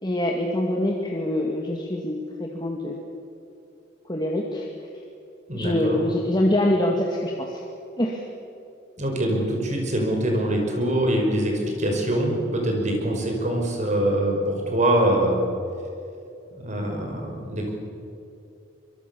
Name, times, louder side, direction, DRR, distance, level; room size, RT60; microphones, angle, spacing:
voice 1, 0.0-3.0 4.1-4.7 5.5-7.6 8.0-8.2, left 1 dB, 20° left, 0 dB, 2.1 m, -24 dB
voice 2, 5.5-6.0 9.0-15.4 16.5-17.7, right 1 dB, 40° right, 1 dB, 5.4 m, -24 dB
24.5 x 23.0 x 7.1 m, 2.7 s
head